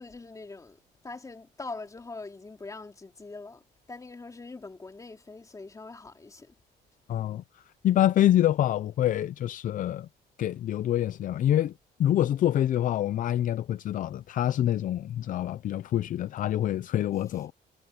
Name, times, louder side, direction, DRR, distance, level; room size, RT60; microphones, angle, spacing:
voice 1, 0.0-6.5 17.3-17.4, left 3 dB, 20° left, 3.4 m, -43 dB
voice 2, 7.1-7.4 7.8-10.1 10.4-11.7 12.0-17.5, left 12 dB, 50° left, 0.6 m, -26 dB
cardioid pair, 110°, 17 cm